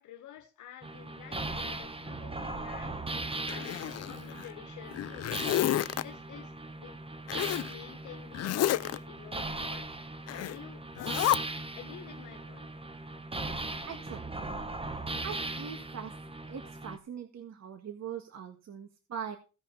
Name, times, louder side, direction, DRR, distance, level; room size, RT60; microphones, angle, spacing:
voice 1, 0.0-3.0 3.4-3.7 4.1-5.3 6.0-6.5 6.8-7.0 7.7-9.9 10.5-11.4 11.7-12.7, left 11 dB, 75° left, 1.3 m, -49 dB
sound 1, 0.8-17.0, right 2 dB, 20° right, 1.4 m, -39 dB
Zipper (clothing), 3.5-4.5 4.9-6.0 7.3-7.7 8.3-9.0 10.3-10.6 11.0-11.4, left 13 dB, 55° left, 0.5 m, -30 dB
voice 2, 13.9-14.5 15.2-16.1 16.5-19.4, right 8 dB, 60° right, 1.7 m, -42 dB
16.5 x 5.6 x 5.7 m
cardioid pair, 90°, 30 cm